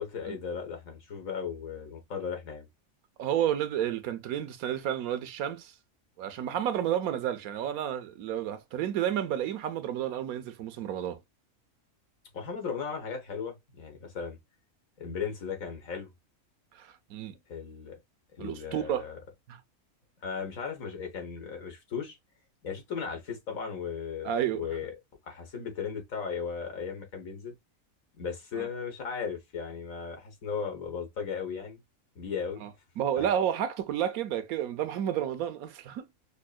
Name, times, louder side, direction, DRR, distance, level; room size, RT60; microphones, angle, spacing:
voice 1, 0.0-2.7 12.3-14.4 15.0-16.1 17.5-18.0 18.4-19.2 20.2-22.2 22.6-24.9 25.3-27.5 28.2-31.8 32.1-32.7 33.2-33.3, left 6 dB, 70° left, 1.7 m, -36 dB
voice 2, 3.2-5.7 6.2-11.2 16.7-17.3 18.4-19.0 19.5-19.6 24.2-24.7 28.6-28.7 32.6-32.7 33.0-36.1, right 10 dB, 90° right, 1.1 m, -31 dB
5.3 x 2.1 x 2.3 m
omnidirectional pair, 1.5 m